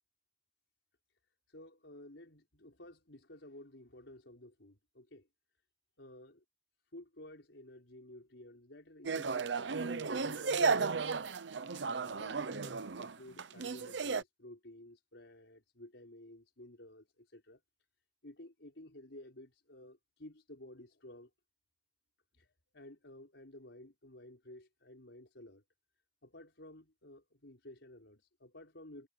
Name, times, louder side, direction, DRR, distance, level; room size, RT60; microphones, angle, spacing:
voice 1, 1.5-5.3 6.0-6.4 6.9-11.3 11.9-17.6 18.2-21.3 22.3-22.5 22.7-25.6 26.2-29.1, left 1 dB, 85° left, 4.8 m, -54 dB
sound 1, 9.0-14.2, right 4 dB, 80° right, 0.8 m, -34 dB
head